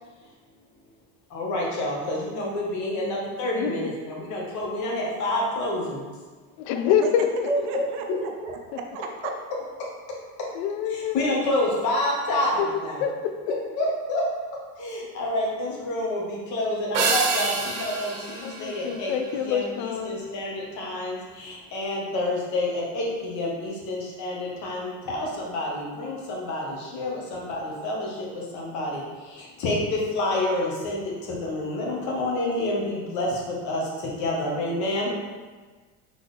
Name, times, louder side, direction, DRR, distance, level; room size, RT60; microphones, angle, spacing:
voice 1, 1.3-6.0 7.5-8.2 10.9-13.0 13.5-14.3 14.8-29.0 29.6-35.1, left 1 dB, 60° left, -3 dB, 1.4 m, -28 dB
voice 2, 6.7-7.5 10.5-11.4 12.6-13.5 18.4-20.2, left 8 dB, 85° left, 7 dB, 0.5 m, -26 dB
voice 3, 7.7-8.6 8.9-9.3, right 6 dB, 85° right, 3 dB, 0.7 m, -35 dB
sound 1, 16.9-19.6, right 4 dB, 50° right, 0.9 m, -28 dB
4.0 x 3.6 x 3.3 m, 1.4 s
supercardioid pair, 110°, 33 cm